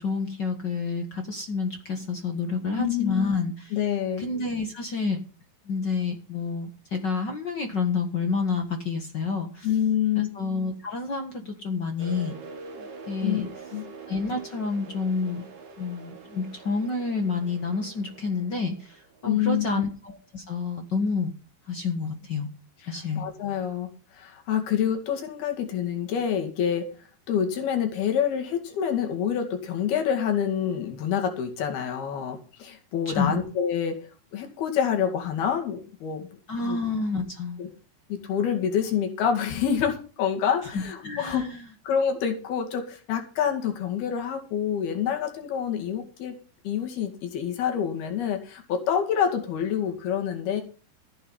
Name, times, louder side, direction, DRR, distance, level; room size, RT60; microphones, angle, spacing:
voice 1, 0.0-3.7 4.2-5.2 5.6-9.7 10.1-12.3 12.8-13.5 14.1-15.5 15.8-21.3 21.7-22.5 22.8-23.2 33.0-33.4 36.5-37.7 40.6-41.6, left 4 dB, 55° left, 5 dB, 1.2 m, -29 dB
voice 2, 2.8-3.3 3.7-4.2 9.6-10.3 13.2-13.4 13.7-13.8 19.3-19.8 22.9-26.9 27.3-34.0 34.3-36.3 36.6-36.8 37.6-37.7 38.1-41.5 41.8-46.3 46.6-50.6, left 8 dB, 75° left, 4 dB, 4.3 m, -27 dB
sound 1, 12.0-19.6, right 4 dB, 50° right, 3.8 m, -44 dB
15.0 x 8.7 x 5.6 m, 0.38 s
omnidirectional pair, 4.5 m